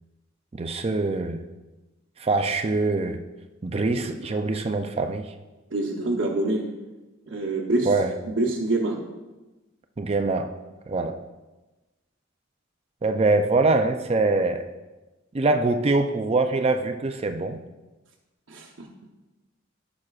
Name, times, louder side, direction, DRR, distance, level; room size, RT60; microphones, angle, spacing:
voice 1, 0.5-1.4 2.2-3.2 3.6-5.2 7.9-8.1 10.0-10.5 10.9-11.1 13.0-14.7 15.3-17.6, right 3 dB, 30° right, 6 dB, 0.4 m, -23 dB
voice 2, 5.7-6.7 7.3-7.9 8.2-9.0 18.5-18.9, right 2 dB, 70° right, -2 dB, 0.9 m, -26 dB
14.0 x 6.2 x 2.4 m, 1.1 s
head